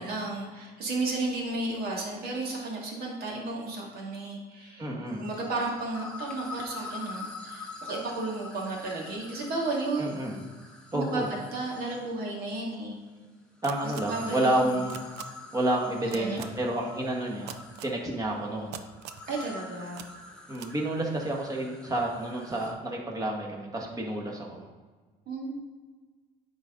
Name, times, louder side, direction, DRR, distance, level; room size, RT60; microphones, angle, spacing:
voice 1, 0.0-4.9 5.2-10.1 10.9-13.0 13.8-14.8 16.0-16.5 19.3-20.1 25.3-25.6, right 2 dB, 65° right, -2 dB, 2.1 m, -33 dB
voice 2, 4.8-5.3 10.0-10.4 10.9-11.3 13.6-15.0 15.5-18.8 20.5-24.7, right 1 dB, 20° right, -1 dB, 1.5 m, -30 dB
sound 1, 5.1-12.2 13.6-22.7, left 3 dB, 5° left, 1.2 m, -45 dB
sound 2, 13.6-14.0 14.9-15.2 16.1-16.4 17.5-17.9 18.7-19.2 19.9-20.1 20.5-20.7, right 10 dB, 80° right, 0.5 m, -41 dB
9.4 x 4.1 x 3.7 m, 1.4 s
cardioid pair, 110°, 17 cm